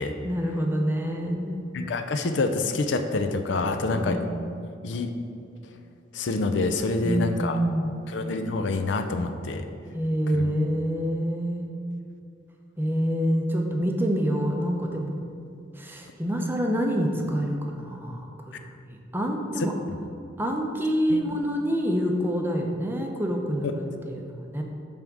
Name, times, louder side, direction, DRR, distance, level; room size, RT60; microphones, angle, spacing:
voice 1, 0.2-1.6 3.9-4.3 7.0-8.0 9.9-11.6 12.8-15.1 15.8-19.7 20.4-24.6, equal, 10° right, 2 dB, 0.6 m, -27 dB
voice 2, 1.7-4.2 4.8-5.1 6.1-7.6 8.1-9.7 10.3-10.5 19.9-20.0 21.1-21.3, left 3 dB, 65° left, 7 dB, 0.5 m, -27 dB
8.7 x 3.5 x 6.1 m, 2.5 s
head